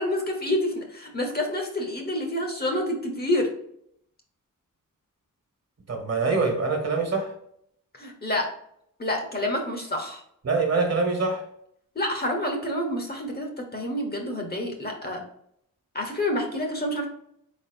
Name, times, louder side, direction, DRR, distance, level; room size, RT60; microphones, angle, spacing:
voice 1, 0.0-3.5 7.9-8.5 9.0-10.2 11.9-15.2 15.9-17.1, left 1 dB, 30° left, 2 dB, 0.9 m, -28 dB
voice 2, 5.9-7.3 10.4-11.4, right 3 dB, 50° right, 2 dB, 1.3 m, -24 dB
4.2 x 4.2 x 2.7 m, 0.70 s
wide cardioid pair, 150°, 33 cm